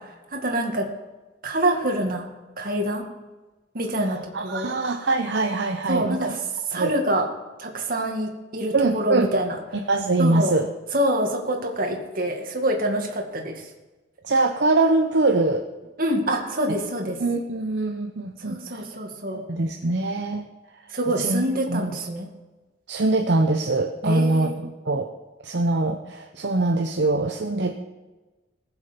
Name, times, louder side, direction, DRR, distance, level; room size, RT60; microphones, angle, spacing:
voice 1, 0.3-0.9 1.4-2.3 2.6-3.0 3.7-4.7 5.9-6.4 6.7-7.3 7.6-9.6 10.2-10.6 10.9-13.7 16.0-17.2 18.5-19.4 20.9-22.3 24.0-24.5, right 1 dB, 50° right, 2 dB, 2.1 m, -26 dB
voice 2, 4.0-6.3 6.7-6.9 8.7-9.3 9.9-10.7 14.2-15.6 17.2-18.8 19.3-20.5 21.2-21.9 22.9-25.1 25.4-27.8, right 2 dB, 65° right, 4 dB, 0.9 m, -23 dB
20.5 x 7.2 x 5.3 m, 1.2 s
head